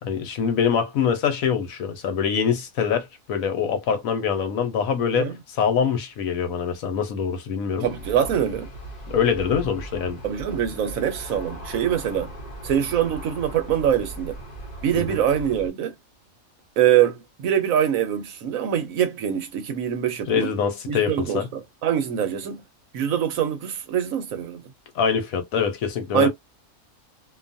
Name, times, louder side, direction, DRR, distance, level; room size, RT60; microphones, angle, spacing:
voice 1, 0.0-5.3 5.6-7.9 9.1-10.2 14.9-15.2 20.3-21.5 24.9-26.3, left 7 dB, 75° left, 1.2 m, -24 dB
Aircraft, 7.8-15.7, right 1 dB, 35° left, 0.8 m, -38 dB
voice 2, 7.8-8.7 10.2-12.3 12.6-14.4 14.8-15.9 16.8-20.5 20.9-22.6 22.9-24.6 26.1-26.3, right 9 dB, 75° right, 1.2 m, -24 dB
2.7 x 2.4 x 2.6 m
omnidirectional pair, 1.5 m